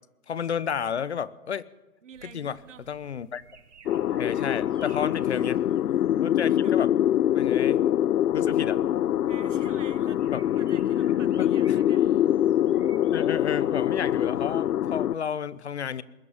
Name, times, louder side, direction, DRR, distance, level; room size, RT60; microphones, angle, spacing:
voice 1, 0.3-1.7 2.2-2.6 2.9-3.4 4.2-5.6 6.2-6.9 7.3-7.8 8.3-8.8 10.3-10.5 11.4-11.8 13.1-16.0, left 7 dB, 45° left, 19 dB, 0.8 m, -31 dB
voice 2, 2.0-2.9 5.1-5.5 6.6-6.8 9.3-10.2 10.6-12.0, right 8 dB, 50° right, 15 dB, 1.4 m, -48 dB
sound 1, 2.1-14.8, right 6 dB, 85° right, 2.2 m, -55 dB
sound 2, 3.9-15.1, left 11 dB, 80° left, 0.6 m, -24 dB
20.5 x 14.0 x 9.5 m, 1.1 s
hypercardioid pair, 160°, 46 cm